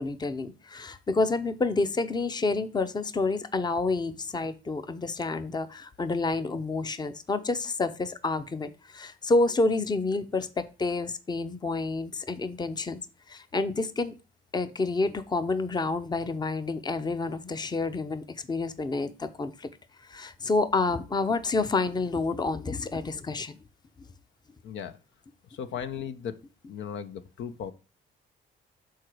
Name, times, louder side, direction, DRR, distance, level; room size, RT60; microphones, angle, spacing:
voice 1, 0.0-13.0 13.3-14.2 14.5-19.7 20.0-23.6, left 3 dB, 20° left, 0.6 m, -29 dB
voice 2, 24.6-25.0 25.5-26.4 26.7-27.7, left 8 dB, 70° left, 0.6 m, -36 dB
6.4 x 3.9 x 4.5 m
cardioid pair, 90°, 20 cm